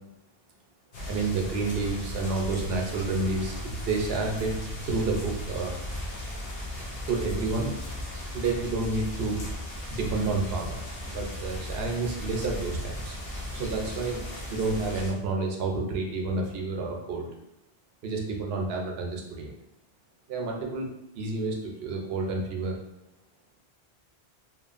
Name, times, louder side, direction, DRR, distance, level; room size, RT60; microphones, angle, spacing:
sound 1, 0.9-15.1, left 1 dB, 70° left, 1.0 m, -36 dB
voice 1, 1.1-4.5 4.8-5.8 7.1-7.7 8.3-9.5 9.9-13.2 13.5-14.2 14.5-17.3 18.0-19.5 20.3-20.9 21.1-22.8, right 3 dB, 75° right, 1 dB, 0.8 m, -30 dB
2.9 x 2.3 x 2.4 m, 0.85 s
omnidirectional pair, 1.0 m